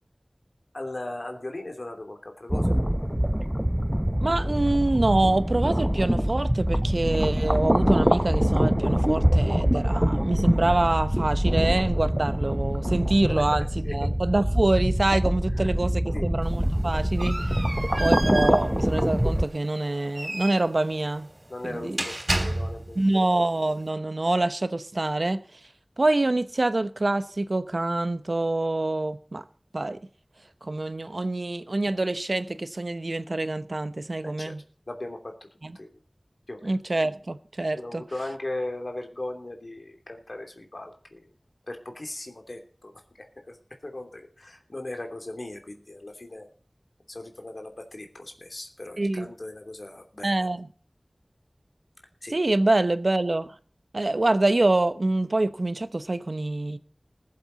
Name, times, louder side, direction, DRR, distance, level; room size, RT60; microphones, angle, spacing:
voice 1, 0.7-2.8 13.3-13.4 13.8-13.9 15.6-15.7 16.1-16.3 21.5-23.0 34.2-34.5 34.9-35.3 35.7-35.9 36.5-36.7 37.7-41.3 41.7-42.9 43.2-46.5 47.1-50.3 52.2-52.4, left 2 dB, 65° left, 3.0 m, -38 dB
sound 1, 2.5-19.5, equal, 10° right, 0.7 m, -24 dB
voice 2, 4.2-17.6 18.0-21.3 21.6-22.0 22.9-25.6 26.0-29.4 29.7-30.0 30.6-34.6 35.6-35.8 36.6-38.0 49.0-49.3 50.2-50.7 52.3-53.5 53.9-56.8, right 2 dB, 70° right, 0.9 m, -26 dB
sound 2, 16.4-23.1, right 1 dB, 55° right, 3.2 m, -33 dB
20.5 x 7.9 x 4.0 m
wide cardioid pair, 45°, 0 cm